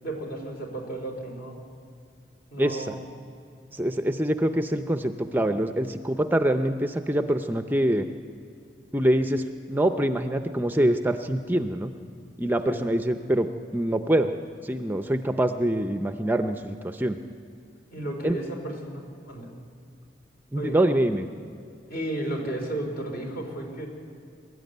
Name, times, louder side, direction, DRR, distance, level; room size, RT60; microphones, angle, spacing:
voice 1, 0.0-1.6 2.5-3.0 12.6-12.9 17.9-19.5 20.5-20.8 21.9-23.9, right 1 dB, 55° left, 2 dB, 4.2 m, -33 dB
voice 2, 2.6-2.9 3.7-8.1 8.9-11.9 12.4-14.3 14.6-17.2 18.2-18.4 20.5-21.3, right 1 dB, 10° right, 7 dB, 0.6 m, -25 dB
22.5 x 12.5 x 9.4 m, 2.3 s
head